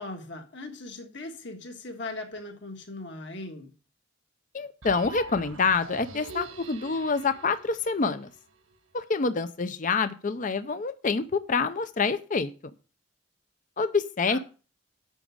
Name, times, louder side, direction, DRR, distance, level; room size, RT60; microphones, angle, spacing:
voice 1, 0.0-3.7 14.3-14.4, left 2 dB, 60° left, 1.5 m, -39 dB
voice 2, 4.5-8.3 8.9-12.5 13.8-14.4, left 4 dB, 40° left, 0.5 m, -27 dB
sound 1, 4.8-8.8, right 3 dB, 80° right, 1.6 m, -43 dB
9.0 x 6.1 x 6.2 m
head